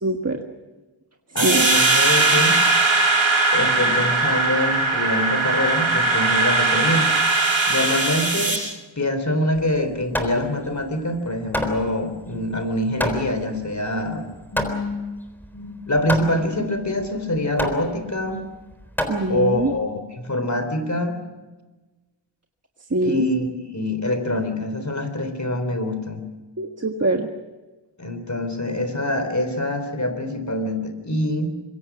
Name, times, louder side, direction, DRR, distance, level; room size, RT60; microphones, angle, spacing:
voice 1, 0.0-0.4 1.4-1.7 19.1-19.7 22.9-23.3 26.6-27.3, right 2 dB, 30° right, 3 dB, 1.6 m, -23 dB
voice 2, 1.3-2.6 3.5-7.1 7.7-8.6 9.0-14.3 14.5-15.1 15.5-18.5 19.3-21.2 23.0-26.3 28.0-31.5, left 1 dB, 35° left, 9 dB, 3.8 m, -25 dB
sound 1, 1.4-8.6, right 3 dB, 70° right, 6.3 m, -19 dB
Hammer, 9.5-19.8, equal, 5° left, 3.8 m, -30 dB
25.5 x 23.5 x 6.2 m, 1.2 s
wide cardioid pair, 85°, 48 cm